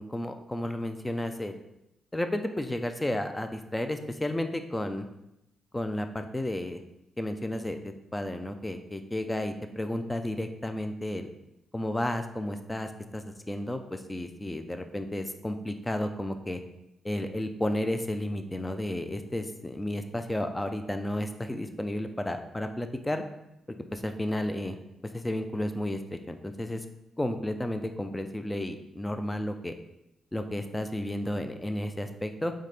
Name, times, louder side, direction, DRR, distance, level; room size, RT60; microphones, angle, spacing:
voice 1, 0.0-1.6 2.1-5.1 5.7-6.8 7.2-11.3 11.7-16.6 17.0-23.2 23.7-24.8 25.1-26.8 27.2-29.7 30.3-32.5, left 1 dB, 10° left, 7 dB, 0.4 m, -32 dB
4.1 x 3.7 x 3.3 m, 0.87 s
cardioid pair, 100°, 0 cm